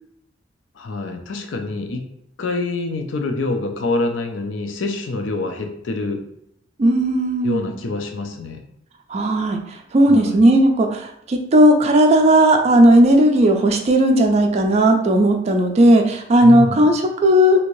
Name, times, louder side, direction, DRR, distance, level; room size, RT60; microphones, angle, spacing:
voice 1, 0.8-2.0 2.4-6.2 7.4-8.6 10.1-10.4 16.4-16.9, left 2 dB, 85° left, 5 dB, 0.5 m, -26 dB
voice 2, 6.8-7.7 9.1-17.6, right 1 dB, 35° right, 3 dB, 0.3 m, -15 dB
2.8 x 2.6 x 3.0 m, 0.74 s
head